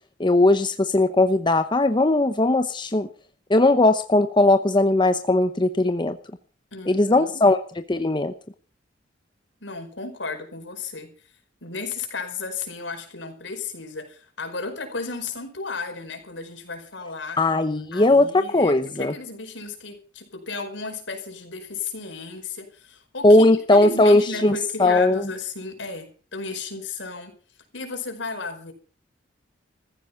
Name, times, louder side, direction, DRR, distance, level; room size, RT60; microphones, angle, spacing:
voice 1, 0.2-3.1 3.5-6.2 6.9-7.6 7.9-8.3 17.4-19.1 23.2-25.2, left 2 dB, 25° left, 0.8 m, -18 dB
voice 2, 6.7-7.4 9.6-11.3 11.6-17.4 17.9-27.4 27.7-28.7, left 4 dB, 70° left, 5.1 m, -34 dB
15.0 x 14.5 x 5.8 m
head